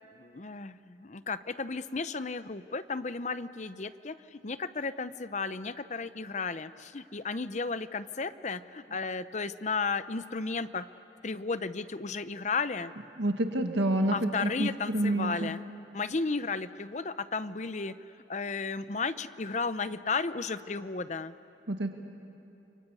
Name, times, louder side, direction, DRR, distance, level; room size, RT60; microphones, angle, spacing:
voice 1, 0.2-4.1 4.4-10.9 11.2-12.9 14.1-15.6 15.9-17.9 18.3-21.3, left 4 dB, 40° left, 13 dB, 0.7 m, -34 dB
voice 2, 13.2-15.5 21.7-21.9, right 1 dB, 75° right, 5 dB, 1.8 m, -28 dB
30.0 x 23.5 x 8.4 m, 3.0 s
head